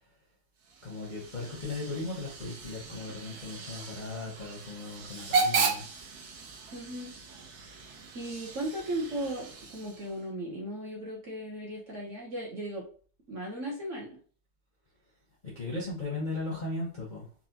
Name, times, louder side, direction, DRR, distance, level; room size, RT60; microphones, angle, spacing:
Hiss / Train / Alarm, 0.6-10.3, right 4 dB, 85° right, 1.5 m, -35 dB
voice 1, 0.8-5.9 15.5-17.3, left 2 dB, 40° left, -5 dB, 0.7 m, -37 dB
voice 2, 6.7-7.1 8.1-12.8 13.3-14.2, right 1 dB, 50° right, -3 dB, 1.1 m, -36 dB
4.2 x 2.4 x 2.8 m, 0.42 s
omnidirectional pair, 2.1 m